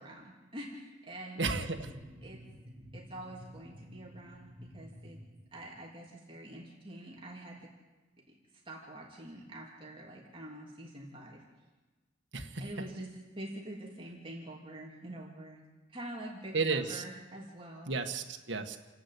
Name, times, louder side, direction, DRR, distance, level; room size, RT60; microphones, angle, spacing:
voice 1, 0.0-1.4 2.2-2.4 2.9-5.2 5.5-7.6 8.6-11.4 12.6-15.6 15.9-18.0, right 1 dB, 30° right, -2 dB, 3.1 m, -46 dB
voice 2, 1.4-1.9 12.3-12.5 16.5-17.0 17.9-18.8, right 4 dB, 70° right, 4 dB, 1.7 m, -32 dB
sound 1, 1.6-5.9, equal, 5° right, 3.7 m, -51 dB
29.0 x 11.0 x 8.5 m, 1.3 s
head